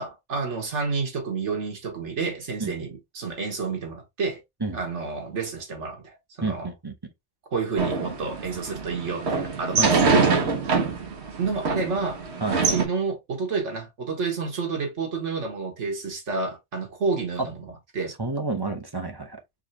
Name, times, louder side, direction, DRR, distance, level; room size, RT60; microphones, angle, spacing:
voice 1, 0.0-4.4 4.7-6.7 7.5-10.2 11.4-12.2 12.6-17.6 17.9-18.1, right 4 dB, 85° right, 1.8 m, -30 dB
voice 2, 6.4-6.9 9.7-10.9 12.4-12.7 18.2-19.4, right 3 dB, 20° right, 0.9 m, -31 dB
sound 1, 7.8-12.8, right 4 dB, 70° right, 1.3 m, -24 dB
4.7 x 3.3 x 2.8 m
omnidirectional pair, 1.2 m